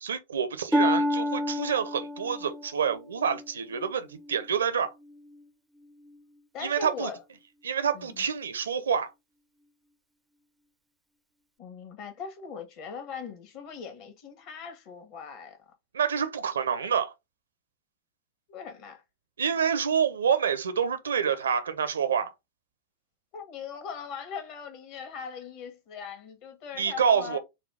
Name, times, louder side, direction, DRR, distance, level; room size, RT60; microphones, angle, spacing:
voice 1, 0.0-4.9 6.6-7.1 7.6-9.1 15.9-17.1 19.4-22.3 26.7-27.4, right 7 dB, 70° right, 0.6 m, -27 dB
Harp, 0.7-4.5 5.0-5.4 6.0-6.2, left 1 dB, ahead, 0.5 m, -30 dB
voice 2, 6.5-7.2 7.9-8.2 11.6-15.6 18.5-19.0 23.3-27.4, left 6 dB, 40° left, 1.2 m, -40 dB
4.1 x 2.3 x 3.3 m
figure-of-eight pair, 90°, 0 cm